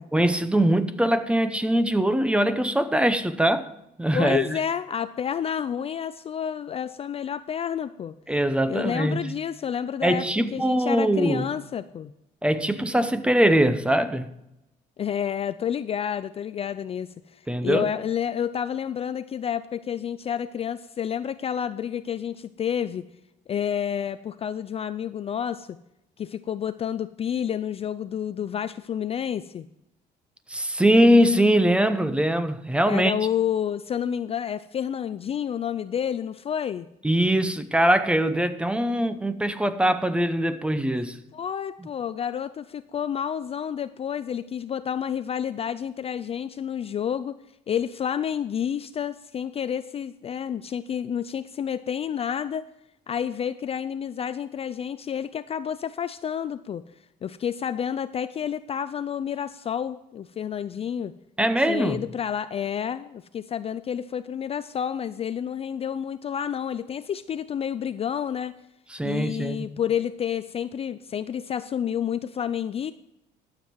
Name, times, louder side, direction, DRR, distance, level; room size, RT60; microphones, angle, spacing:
voice 1, 0.1-3.7 4.0-4.5 8.3-9.2 10.0-11.5 12.4-14.3 17.5-17.9 30.5-33.1 37.0-41.2 61.4-62.0 68.9-69.7, right 1 dB, 5° right, 0.7 m, -22 dB
voice 2, 4.1-8.2 8.7-10.3 10.5-12.1 15.0-23.1 23.5-25.8 26.2-29.7 32.9-36.9 41.3-47.4 47.7-52.7 53.1-56.8 57.2-61.1 61.6-68.6 69.0-72.9, left 8 dB, 35° left, 0.4 m, -29 dB
12.0 x 7.5 x 4.6 m
cardioid pair, 110°, 17 cm